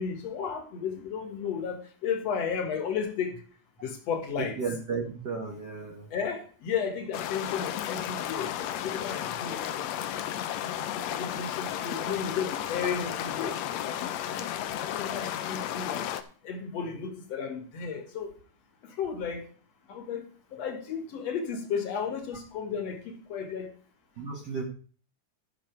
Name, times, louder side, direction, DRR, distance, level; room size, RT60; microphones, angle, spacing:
voice 1, 0.0-3.3 3.8-4.6 6.1-8.5 8.8-9.7 10.3-13.6 13.8-14.0 14.3-14.5 14.7-16.1 16.4-18.3 18.8-19.5 19.9-23.7, left 6 dB, 55° left, 5 dB, 2.5 m, -34 dB
voice 2, 4.6-6.1 24.2-24.6, right 5 dB, 60° right, 2 dB, 1.0 m, -34 dB
sound 1, 7.1-16.2, left 11 dB, 75° left, 1.6 m, -33 dB
13.5 x 6.6 x 4.5 m, 0.42 s
omnidirectional pair, 3.8 m